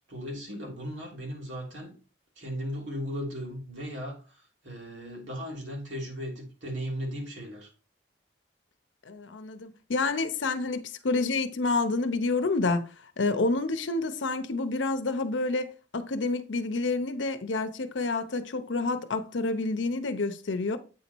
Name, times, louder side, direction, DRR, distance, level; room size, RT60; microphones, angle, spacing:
voice 1, 0.1-1.9 2.4-7.7, equal, 85° right, 2.9 m, -37 dB
voice 2, 9.1-12.9 13.2-20.8, left 3 dB, 85° left, 0.7 m, -28 dB
8.3 x 4.1 x 4.5 m
head